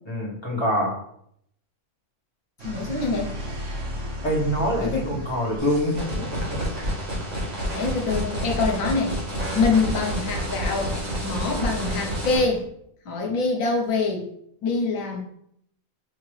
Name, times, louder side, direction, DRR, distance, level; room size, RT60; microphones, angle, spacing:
voice 1, 0.1-0.9 4.2-6.5 6.7-6.9, equal, 20° left, -4 dB, 1.0 m, -25 dB
voice 2, 2.6-3.4 4.8-5.1 7.7-9.2 9.5-10.9 11.2-12.6 13.0-14.3 14.6-15.2, left 3 dB, 70° left, 2 dB, 1.2 m, -25 dB
sound 1, 2.6-12.6, equal, 60° right, 1.4 m, -38 dB
sound 2, 5.6-12.4, equal, 75° right, 2.0 m, -29 dB
5.2 x 2.8 x 3.1 m, 0.71 s
omnidirectional pair, 1.5 m